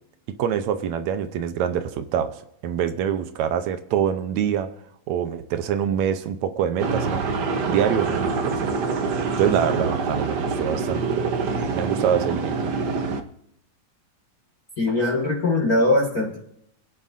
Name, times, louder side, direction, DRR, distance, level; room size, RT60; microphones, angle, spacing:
voice 1, 0.4-4.7 5.1-7.2 7.7-8.7 9.4-11.2 11.7-12.7, right 9 dB, 75° right, 10 dB, 2.2 m, -25 dB
sound 1, 6.8-13.2, right 4 dB, 60° right, 1.1 m, -25 dB
voice 2, 14.8-16.4, left 2 dB, 35° left, -1 dB, 1.8 m, -21 dB
29.0 x 10.0 x 2.7 m, 0.74 s
omnidirectional pair, 3.3 m